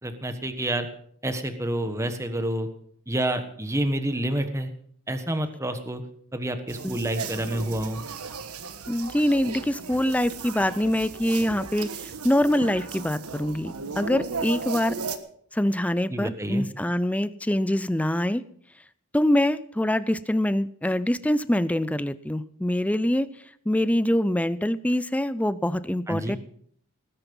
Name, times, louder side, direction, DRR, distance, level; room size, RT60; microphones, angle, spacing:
voice 1, 0.0-0.9 1.2-2.7 3.1-4.7 5.1-6.0 6.3-8.0 16.1-16.7 26.1-26.4, right 1 dB, 15° right, 8 dB, 1.3 m, -28 dB
sound 1, 6.7-15.2, right 4 dB, 85° right, 1.3 m, -36 dB
voice 2, 8.9-15.0 15.5-18.4 19.1-23.3 23.7-26.4, left 1 dB, 5° left, 16 dB, 0.5 m, -24 dB
19.5 x 10.0 x 5.4 m, 0.62 s
head